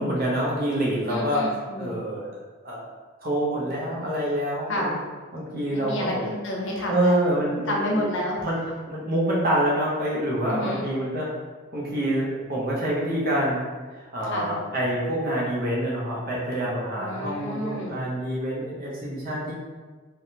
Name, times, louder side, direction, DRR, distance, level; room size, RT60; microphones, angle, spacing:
voice 1, 0.0-1.5 1.8-2.3 2.6-2.9 3.2-5.0 5.3-6.3 6.9-7.9 8.4-8.6 8.9-11.3 11.7-13.6 14.0-19.5, right 1 dB, 45° right, -5 dB, 0.8 m, -26 dB
voice 2, 1.1-2.0 4.7-5.0 5.7-7.3 7.7-8.4 10.4-10.9 14.3-14.6 17.0-18.0, left 1 dB, 65° left, -2 dB, 0.6 m, -30 dB
3.4 x 2.1 x 2.8 m, 1.4 s
head